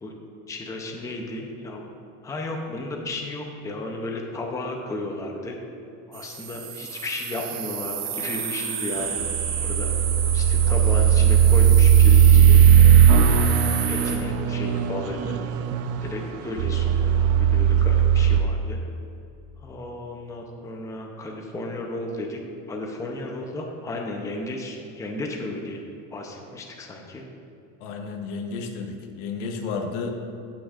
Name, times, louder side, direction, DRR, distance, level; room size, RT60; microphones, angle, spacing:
voice 1, 0.5-1.9 2.2-5.6 6.1-9.2 9.6-9.9 10.3-12.6 13.9-15.4 16.0-18.8 19.6-22.4 22.7-25.8 26.1-27.2, left 2 dB, 10° left, 1 dB, 0.6 m, -34 dB
sound 1, 6.1-14.2, right 7 dB, 60° right, 1.3 m, -31 dB
sound 2, 9.0-18.4, right 8 dB, 40° right, 0.4 m, -17 dB
voice 2, 27.8-30.1, left 4 dB, 80° left, 4 dB, 1.1 m, -32 dB
16.5 x 6.1 x 2.4 m, 2.7 s
cardioid pair, 155°, 36 cm